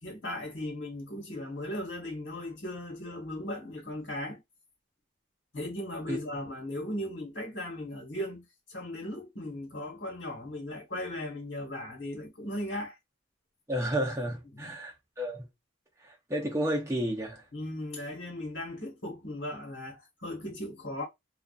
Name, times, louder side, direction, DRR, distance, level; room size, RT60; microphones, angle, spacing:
voice 1, 0.0-4.4 5.5-12.9 14.5-14.8 17.5-21.0, left 1 dB, 65° left, 1.3 m, -37 dB
voice 2, 13.7-15.5 16.0-17.4, equal, 15° right, 0.7 m, -32 dB
2.4 x 2.4 x 2.4 m
head